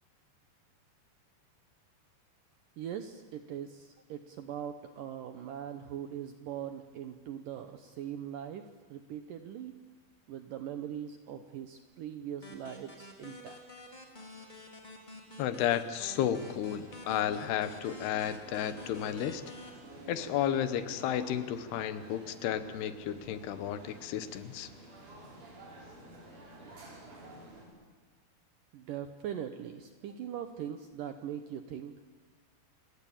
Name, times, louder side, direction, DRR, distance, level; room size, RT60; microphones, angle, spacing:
voice 1, 2.8-8.6 8.9-9.7 10.3-13.6 28.7-31.9, right 9 dB, 75° right, 8 dB, 2.0 m, -41 dB
sound 1, 12.4-19.7, left 1 dB, 10° left, 2.7 m, -49 dB
voice 2, 15.4-19.4 20.1-24.7, left 10 dB, 75° left, 12 dB, 2.9 m, -32 dB
sound 2, 16.1-27.6, right 1 dB, 45° right, 6.8 m, -51 dB
30.0 x 18.0 x 8.7 m, 1.4 s
omnidirectional pair, 5.0 m